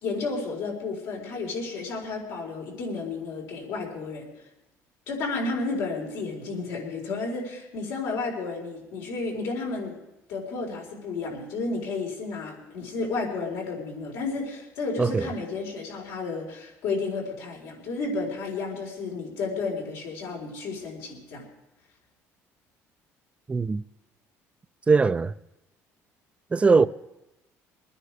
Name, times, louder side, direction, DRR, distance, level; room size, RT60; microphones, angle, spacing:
voice 1, 0.0-4.3 5.1-10.0 10.3-21.5 26.6-26.8, left 3 dB, 85° left, 4.4 m, -32 dB
voice 2, 15.0-15.3 23.5-23.8 24.9-25.3 26.5-26.9, right 4 dB, 20° right, 0.4 m, -20 dB
23.5 x 10.0 x 4.9 m
cardioid pair, 105°, 6 cm